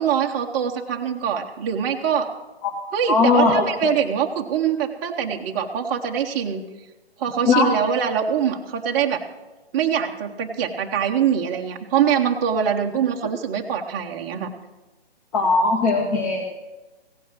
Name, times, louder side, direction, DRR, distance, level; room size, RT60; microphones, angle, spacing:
voice 1, 0.0-2.3 2.9-6.6 7.2-9.2 9.7-14.5, right 8 dB, 20° right, 0 dB, 0.7 m, -23 dB
voice 2, 3.1-3.9 7.5-7.8 15.3-16.5, left 3 dB, 35° left, 0 dB, 1.8 m, -19 dB
16.0 x 9.1 x 5.9 m, 1.1 s
figure-of-eight pair, 140°, 32 cm